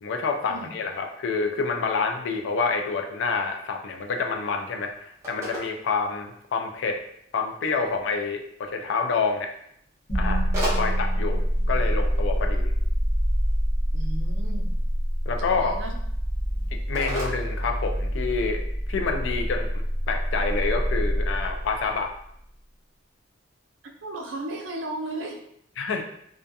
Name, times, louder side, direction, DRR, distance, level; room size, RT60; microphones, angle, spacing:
voice 1, 0.0-7.0 7.3-9.5 10.1-10.5 10.8-12.7 15.3-15.7 16.9-18.6 18.9-22.1 25.8-26.0, left 4 dB, 75° left, 4 dB, 0.4 m, -28 dB
Telephone, 3.9-18.4, equal, 15° right, 0.6 m, -40 dB
sound 1, 10.1-22.2, equal, 40° left, 1.0 m, -26 dB
voice 2, 13.9-14.7 15.5-15.9 16.5-16.6 24.0-25.4, right 2 dB, 80° right, 1 dB, 0.5 m, -35 dB
2.4 x 2.2 x 2.6 m, 0.72 s
head